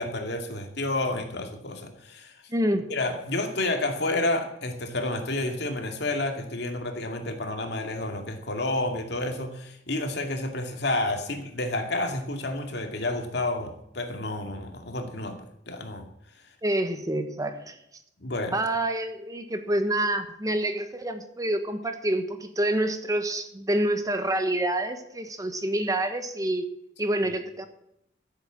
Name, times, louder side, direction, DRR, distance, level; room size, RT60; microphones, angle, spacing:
voice 1, 0.0-2.4 2.9-15.4 15.7-16.1 18.2-18.6, left 2 dB, 65° left, 5 dB, 2.3 m, -30 dB
voice 2, 2.5-2.9 16.6-17.8 18.5-26.7 27.0-27.7, right 1 dB, 20° right, 8 dB, 1.2 m, -27 dB
14.0 x 8.1 x 7.4 m, 0.78 s
head